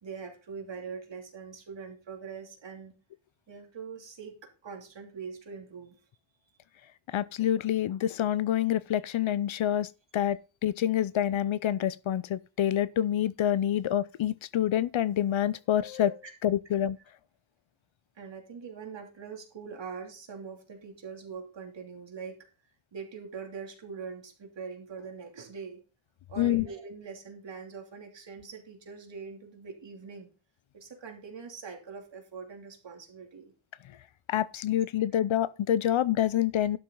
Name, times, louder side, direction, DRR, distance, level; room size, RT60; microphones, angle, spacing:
voice 1, 0.0-2.9 3.5-6.0 15.9-16.3 18.1-22.4 22.9-25.8 26.3-30.3 30.7-33.5, right 5 dB, 60° right, 2.9 m, -43 dB
voice 2, 7.1-17.0 26.4-26.6 34.3-36.8, left 11 dB, 70° left, 0.7 m, -27 dB
11.5 x 7.3 x 3.8 m
wide cardioid pair, 155°, 49 cm